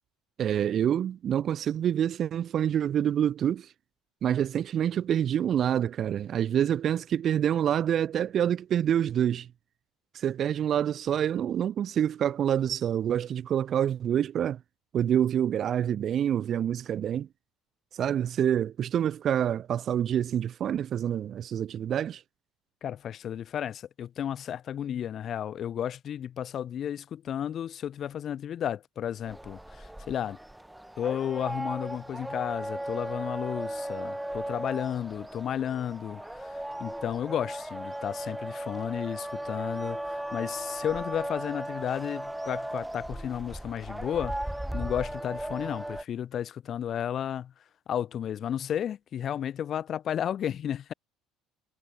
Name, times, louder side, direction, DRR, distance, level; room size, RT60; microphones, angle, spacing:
voice 1, 0.4-3.7 4.2-9.5 10.1-14.6 14.9-17.3 17.9-22.2, right 9 dB, 35° right, 0.9 m, -27 dB
voice 2, 22.8-30.4 31.0-44.3 44.7-47.5 47.9-50.9, left 9 dB, 35° left, 2.7 m, -33 dB
sound 1, 29.2-46.0, right 1 dB, 5° right, 7.1 m, -37 dB
cardioid pair, 170°, 0 cm